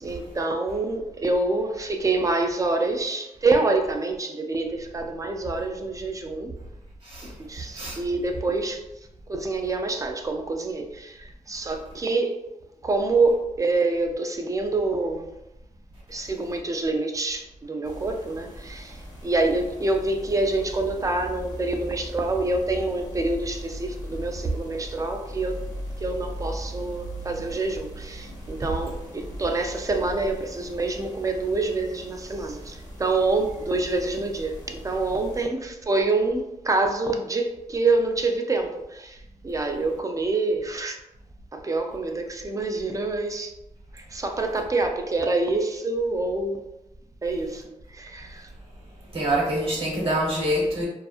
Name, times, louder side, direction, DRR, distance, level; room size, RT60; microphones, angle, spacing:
voice 1, 0.0-6.5 7.5-8.8 9.3-12.4 12.8-15.3 16.1-25.6 26.0-39.2 39.4-41.0 41.5-43.5 43.9-46.6 47.2-47.6 47.9-48.5, right 3 dB, 25° right, 4 dB, 0.4 m, -26 dB
sound 1, 17.8-35.4, equal, 30° left, 0.7 m, -39 dB
voice 2, 49.1-50.8, right 1 dB, 45° right, -3 dB, 1.0 m, -25 dB
2.6 x 2.3 x 2.4 m, 0.92 s
cardioid pair, 95°, 14 cm